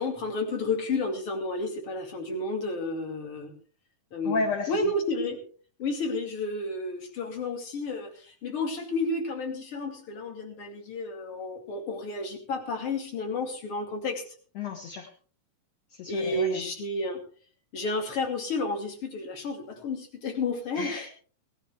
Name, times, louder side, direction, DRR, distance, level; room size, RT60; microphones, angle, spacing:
voice 1, 0.0-3.5 4.1-5.4 5.8-14.2 16.1-17.2 17.7-21.1, left 2 dB, 40° left, 4 dB, 3.0 m, -31 dB
voice 2, 4.2-4.7 14.6-15.1 15.9-16.6 20.7-21.1, left 4 dB, 55° left, 2 dB, 2.5 m, -32 dB
18.5 x 13.0 x 3.5 m, 0.41 s
omnidirectional pair, 4.0 m